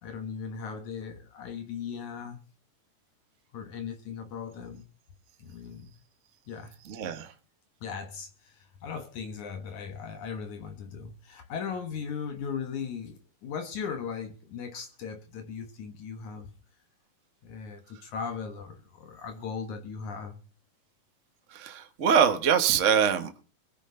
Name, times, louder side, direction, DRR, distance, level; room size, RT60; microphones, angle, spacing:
voice 1, 0.0-2.4 3.5-4.8 5.4-5.9 6.5-6.8 7.8-16.5 17.4-20.4, left 6 dB, 65° left, 2.6 m, -38 dB
voice 2, 6.8-7.3 21.5-23.4, right 8 dB, 45° right, 0.9 m, -24 dB
22.5 x 10.0 x 3.8 m
omnidirectional pair, 3.8 m